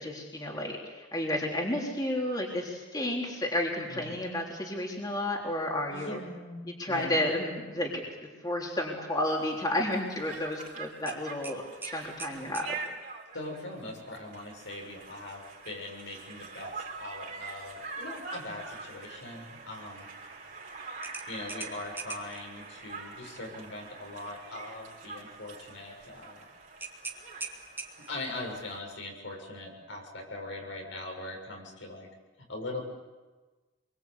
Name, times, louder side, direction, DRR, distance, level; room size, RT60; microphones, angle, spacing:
voice 1, 0.0-6.2 6.6-8.0 8.4-12.8, left 1 dB, 20° left, -1 dB, 3.6 m, -32 dB
voice 2, 5.9-7.2 13.3-20.1 21.3-26.4 28.1-32.1 32.5-32.8, left 2 dB, 75° left, 1 dB, 7.1 m, -41 dB
Conversation, 9.3-28.8, right 4 dB, 45° right, 4.3 m, -45 dB
sound 1, 11.1-12.7 15.3-15.6 16.0-16.1 21.0-22.4 26.8-28.2, right 3 dB, 10° right, 2.5 m, -41 dB
27.5 x 23.5 x 8.4 m, 1.3 s
head